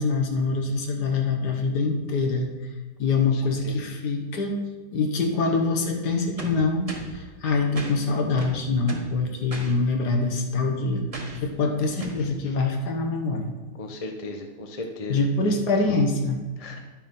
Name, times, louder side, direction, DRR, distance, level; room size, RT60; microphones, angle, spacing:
voice 1, 0.0-2.5 3.0-4.6 4.9-11.1 11.4-13.5 15.1-16.4, left 3 dB, 60° left, 3 dB, 1.6 m, -24 dB
voice 2, 3.3-3.8 13.8-15.2 16.6-16.8, left 2 dB, 30° left, 3 dB, 0.6 m, -36 dB
sound 1, 6.4-7.2 7.7-7.9 8.4-9.1 9.5-9.7 11.1-11.4 12.0-12.2, right 1 dB, 20° right, 1.0 m, -35 dB
10.5 x 6.4 x 5.3 m, 1.2 s
omnidirectional pair, 2.2 m